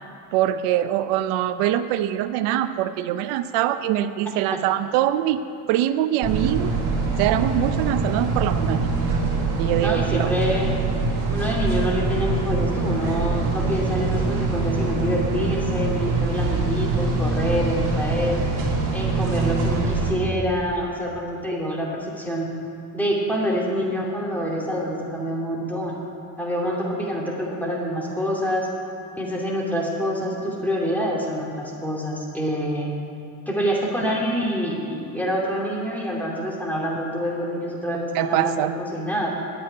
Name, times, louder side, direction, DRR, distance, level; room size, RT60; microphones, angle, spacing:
voice 1, 0.3-6.7 7.2-8.9 9.6-10.3 38.1-38.7, right 12 dB, 85° right, 12 dB, 0.7 m, -23 dB
sound 1, 6.2-20.1, right 3 dB, 55° right, 3.2 m, -24 dB
voice 2, 9.8-10.7 11.3-18.4 18.9-22.5 22.9-26.0 26.4-28.7 29.2-32.9 33.5-39.3, equal, 5° left, -3 dB, 2.7 m, -26 dB
9.6 x 9.0 x 9.7 m, 2.5 s
cardioid pair, 120°, 49 cm